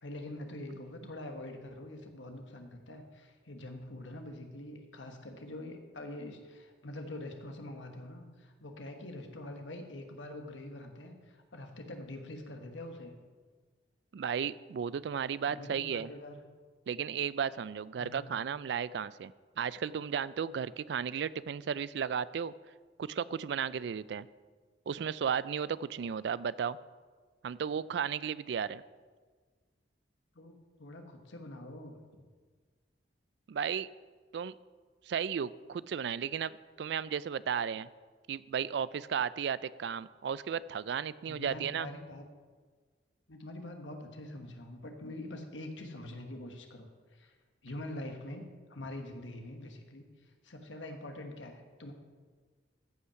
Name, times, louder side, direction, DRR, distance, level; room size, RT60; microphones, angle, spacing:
voice 1, 0.0-13.1 15.5-16.4 18.0-18.3 30.3-32.0 41.3-42.2 43.3-47.3 47.6-50.0 50.4-51.9, left 1 dB, 90° left, 4 dB, 1.3 m, -45 dB
voice 2, 14.1-16.1 16.9-19.3 19.6-22.5 23.0-24.3 24.9-26.8 27.4-28.8 33.5-33.9 34.3-34.5 35.1-36.5 36.8-37.9 38.3-41.9, right 7 dB, 65° right, 18 dB, 0.3 m, -34 dB
14.5 x 5.6 x 5.8 m, 1.5 s
head